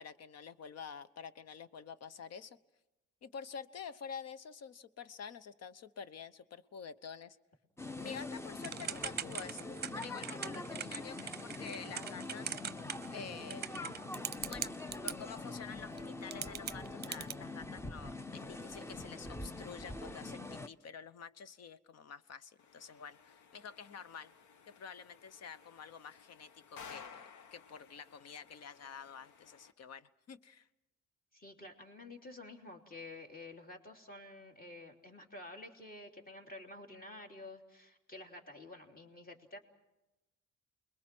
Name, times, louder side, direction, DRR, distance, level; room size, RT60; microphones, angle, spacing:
voice 1, 0.0-2.6 3.2-7.4 8.0-9.7 9.9-12.6 13.1-13.8 14.5-14.7 15.0-24.3 24.6-27.2 27.5-30.7, left 6 dB, 55° left, 15 dB, 1.0 m, -48 dB
sound 1, 7.8-20.7, left 2 dB, 10° left, 0.8 m, -44 dB
Typing / Telephone, 8.6-15.1 16.0-16.1 16.3-17.3, right 8 dB, 35° right, 0.8 m, -41 dB
sound 2, 22.6-29.7, left 6 dB, 75° left, 1.2 m, -56 dB
voice 2, 31.3-39.6, left 2 dB, 30° left, 2 dB, 3.3 m, -50 dB
29.0 x 21.5 x 6.2 m, 0.99 s
cardioid pair, 90°, 30 cm